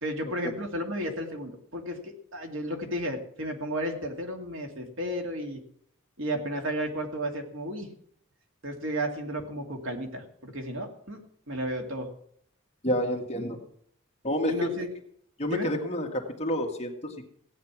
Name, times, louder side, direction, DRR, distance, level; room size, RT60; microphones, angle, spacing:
voice 1, 0.0-5.6 6.2-7.9 8.6-11.2 11.5-12.1 14.5-14.9 15.5-15.7, equal, 65° right, 3 dB, 2.4 m, -33 dB
voice 2, 12.8-13.6 14.2-14.7 15.4-17.3, equal, 30° left, 2 dB, 1.9 m, -29 dB
16.0 x 9.5 x 6.1 m, 0.66 s
head